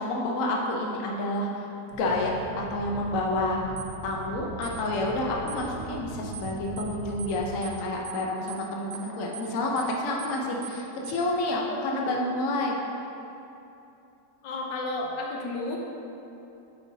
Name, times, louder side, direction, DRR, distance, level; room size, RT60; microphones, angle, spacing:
voice 1, 0.0-3.6 4.0-12.8, left 1 dB, 60° left, -1 dB, 0.9 m, -29 dB
sound 1, 1.9-7.5, right 2 dB, 40° right, 0.8 m, -41 dB
sound 2, 3.8-3.9 4.6-4.8 5.5-5.6 6.3-6.5 6.8-6.9 7.2-7.4 7.6-7.8 8.0-8.2 8.5-8.6 8.9-9.1 9.3-9.5 9.8-9.9 10.2-10.4 10.6-10.8 11.0-11.2, right 8 dB, 85° right, 0.5 m, -41 dB
voice 2, 14.4-15.8, left 2 dB, 75° left, -1 dB, 1.4 m, -32 dB
7.8 x 5.4 x 2.7 m, 2.9 s
omnidirectional pair, 1.9 m